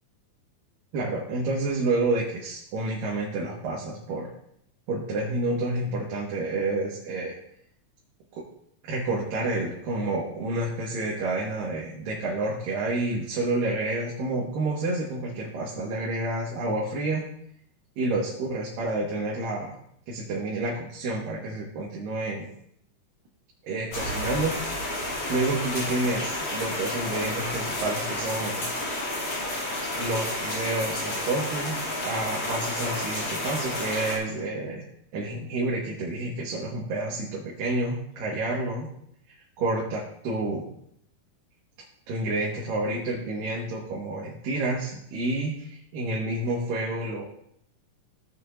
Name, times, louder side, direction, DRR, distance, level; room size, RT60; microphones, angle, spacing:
voice 1, 0.9-4.3 4.9-7.4 8.8-17.3 18.0-19.8 20.1-22.5 23.6-24.7 25.3-28.7 29.8-31.8 32.0-34.8 35.1-38.9 39.6-40.0 40.2-40.7 42.1-47.2, right 2 dB, 90° right, -4 dB, 3.2 m, -29 dB
sound 1, 23.9-34.2, left 1 dB, 50° left, 3.6 m, -31 dB
16.5 x 7.1 x 2.6 m, 0.71 s
omnidirectional pair, 3.8 m